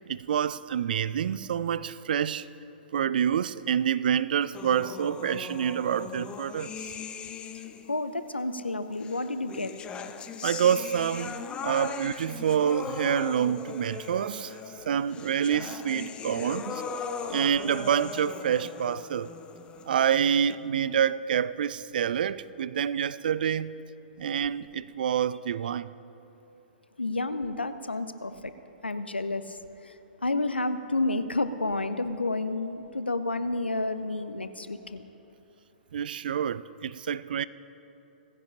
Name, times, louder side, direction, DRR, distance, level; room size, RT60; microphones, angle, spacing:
voice 1, 0.1-2.5 2.9-6.9 10.4-14.6 14.9-16.8 17.3-19.3 19.9-23.8 24.2-25.9 35.9-37.4, right 8 dB, 60° right, 0.4 m, -27 dB
sound 1, 4.5-8.0 9.0-20.6, left 6 dB, 15° left, 0.5 m, -39 dB
voice 2, 7.9-9.7 27.0-28.5 28.8-29.6 29.8-29.9 30.2-35.1, left 2 dB, 85° left, 0.6 m, -30 dB
17.5 x 15.0 x 2.9 m
figure-of-eight pair, 115°, 6 cm